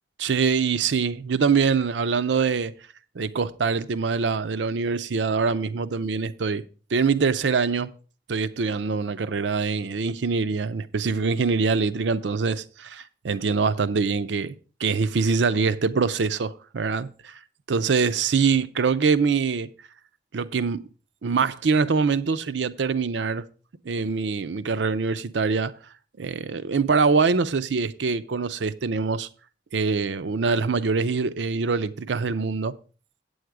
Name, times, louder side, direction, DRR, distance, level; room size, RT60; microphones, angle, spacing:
voice 1, 0.2-2.7 3.1-6.6 6.9-7.9 8.3-14.5 14.8-17.4 17.7-19.7 20.3-20.8 21.2-23.5 23.8-25.7 26.2-29.3 29.7-32.7, right 5 dB, 80° right, 0.5 m, -24 dB
8.6 x 7.9 x 4.7 m
head